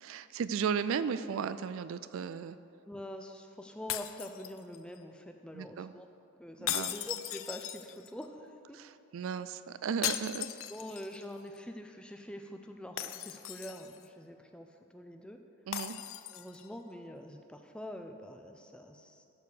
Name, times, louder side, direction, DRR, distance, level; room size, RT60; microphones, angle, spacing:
voice 1, 0.0-2.6 5.5-5.9 6.6-6.9 8.7-10.5 15.7-16.0, right 6 dB, 65° right, 13 dB, 0.3 m, -35 dB
voice 2, 2.9-6.1 6.4-8.8 10.7-15.4 16.3-19.2, equal, 5° left, 4 dB, 0.5 m, -45 dB
sound 1, 3.9-5.0 6.7-8.2 10.0-11.2 11.6-11.7 13.0-14.1 15.7-16.7, left 12 dB, 65° left, 0.4 m, -38 dB
13.0 x 4.7 x 6.9 m, 2.6 s
head